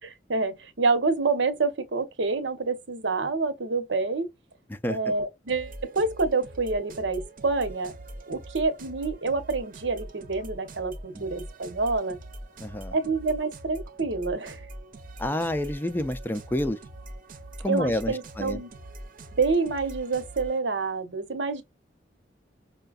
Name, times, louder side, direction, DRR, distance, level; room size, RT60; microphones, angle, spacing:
voice 1, 0.0-4.3 4.9-7.9 8.3-12.2 12.9-14.6 17.7-18.7 19.3-21.6, right 3 dB, 90° right, 1.0 m, -27 dB
sound 1, 5.5-20.6, right 1 dB, 50° right, 0.7 m, -43 dB
voice 2, 12.6-13.0 15.2-16.8 17.6-18.6, left 1 dB, 10° left, 0.4 m, -29 dB
5.5 x 2.2 x 2.4 m
head